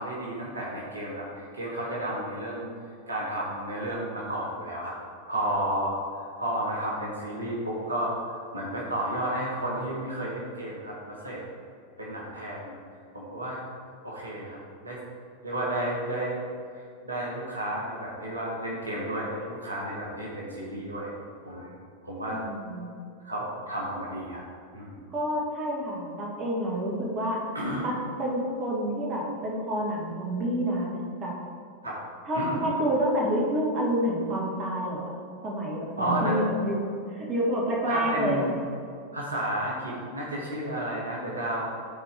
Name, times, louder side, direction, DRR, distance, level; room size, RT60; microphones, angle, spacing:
voice 1, 0.0-2.7 3.1-5.0 5.2-8.2 8.5-11.4 12.0-12.7 13.1-13.6 14.0-14.6 14.8-15.0 15.4-16.4 16.7-21.1 21.4-21.7 22.0-22.4 23.2-24.4 24.7-25.0 27.5-27.8 31.8-32.0 32.3-32.7 36.0-36.4 37.9-38.5 39.1-41.7, right 1 dB, 80° right, -4 dB, 1.4 m, -32 dB
voice 2, 22.3-22.9 25.1-27.4 27.8-31.4 32.3-35.1 35.4-36.8 37.1-38.5, equal, 30° right, -3 dB, 1.8 m, -28 dB
12.5 x 4.3 x 3.5 m, 2.4 s
figure-of-eight pair, 90°, 0 cm